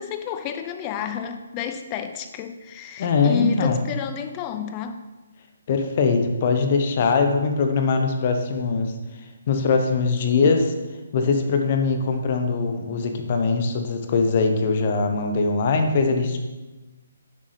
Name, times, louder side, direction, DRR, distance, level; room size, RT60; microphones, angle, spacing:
voice 1, 0.0-5.0, left 8 dB, 25° left, 7 dB, 0.7 m, -30 dB
voice 2, 3.0-3.8 5.7-10.7 11.1-16.4, left 4 dB, 40° left, 5 dB, 1.1 m, -22 dB
9.6 x 7.8 x 3.4 m, 1.2 s
figure-of-eight pair, 140°, 0 cm